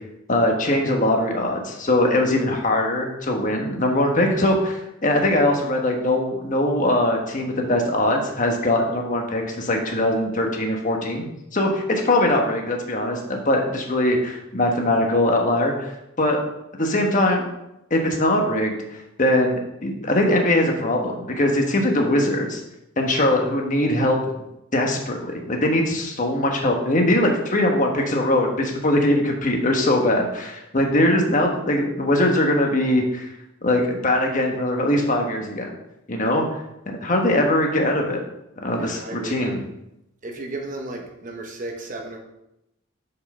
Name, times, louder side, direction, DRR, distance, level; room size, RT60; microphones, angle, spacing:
voice 1, 0.3-11.3 11.5-15.9 16.2-16.4 16.7-17.4 17.9-18.7 19.2-22.6 23.0-24.2 24.7-33.3 33.6-35.7 36.1-36.6 36.9-38.2 38.6-39.6, left 1 dB, 40° left, 2 dB, 1.3 m, -21 dB
voice 2, 38.7-39.7 40.2-42.2, right 2 dB, 40° right, 2 dB, 1.0 m, -34 dB
6.6 x 5.5 x 5.4 m, 0.87 s
head